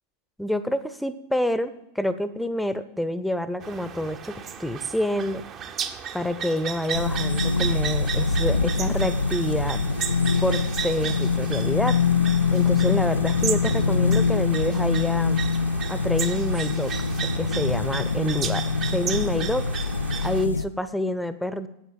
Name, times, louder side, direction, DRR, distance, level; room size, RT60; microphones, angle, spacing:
voice 1, 0.4-5.4 6.1-9.8 10.4-12.0 12.5-15.5 15.9-16.9 17.4-19.6 20.2-21.7, left 1 dB, ahead, 13 dB, 0.9 m, -27 dB
sound 1, 3.6-20.5, right 8 dB, 30° right, 1.0 m, -35 dB
sound 2, 6.9-20.7, left 4 dB, 80° left, 0.4 m, -24 dB
sound 3, 9.1-11.0 13.0-14.8 16.7-18.7, right 3 dB, 70° right, 1.8 m, -38 dB
10.0 x 8.8 x 8.9 m, 0.85 s
figure-of-eight pair, 90°, 0 cm